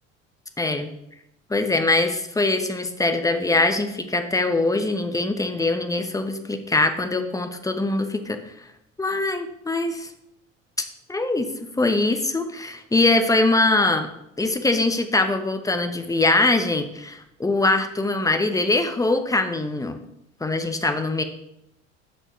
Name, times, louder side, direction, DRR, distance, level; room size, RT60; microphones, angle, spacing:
voice 1, 0.6-0.9 1.5-8.4 9.0-10.1 11.1-11.5 11.8-14.1 14.4-20.0 20.4-21.2, left 2 dB, 10° left, 7 dB, 1.0 m, -22 dB
7.8 x 6.2 x 4.5 m, 0.83 s
figure-of-eight pair, 65°, 39 cm